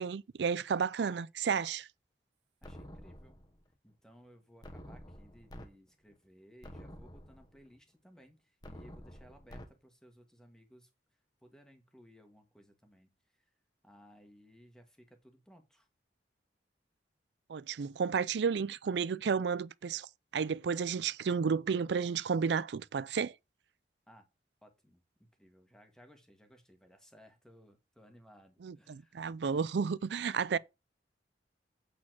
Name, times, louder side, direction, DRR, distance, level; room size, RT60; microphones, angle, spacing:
voice 1, 0.0-1.9 17.5-20.1 20.3-23.3 28.6-30.6, right 6 dB, 75° right, 0.4 m, -32 dB
sound 1, 2.6-3.6 4.6-5.7 6.1-6.2 6.6-7.6 8.6-9.7, equal, 25° left, 1.2 m, -49 dB
voice 2, 2.6-3.4 3.8-10.9 11.4-13.5 13.8-15.9 24.1-24.3 24.6-30.6, equal, 5° left, 1.6 m, -60 dB
8.6 x 4.2 x 6.1 m
head